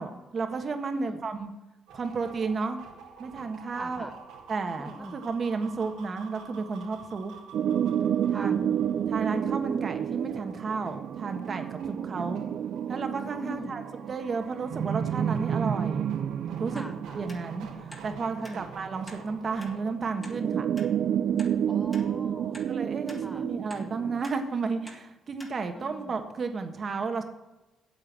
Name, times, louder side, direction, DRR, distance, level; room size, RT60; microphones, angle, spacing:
voice 1, 0.0-1.5 1.9-2.8 3.2-4.1 4.5-7.3 8.3-8.7 9.1-12.4 12.9-16.1 16.6-16.8 17.1-20.7 22.7-27.2, right 4 dB, 45° right, 7 dB, 1.4 m, -32 dB
sound 1, 1.9-19.9, right 5 dB, 90° right, 2.0 m, -49 dB
voice 2, 3.7-4.1 4.8-5.2 8.3-8.5 13.4-13.7 16.7-17.2 18.4-18.7 21.7-22.7 23.2-23.5 25.7-26.1, equal, 5° right, 5 dB, 0.8 m, -41 dB
sound 2, 7.5-19.4 20.2-24.2, right 9 dB, 65° right, 0.4 m, -30 dB
sound 3, 16.8-16.9 17.3-17.4 17.9-18.1 18.4-18.6 19.1-19.2 19.6-19.7 20.2-20.4 20.8-20.9 21.4-21.5 21.9-22.1 22.5-22.7 23.1-23.2 23.7-23.9 24.2-24.4 24.9-25.0 25.4-25.5 26.0-26.1, equal, 15° left, 2.1 m, -47 dB
8.6 x 8.0 x 7.5 m, 1.0 s
cardioid pair, 90°, 0 cm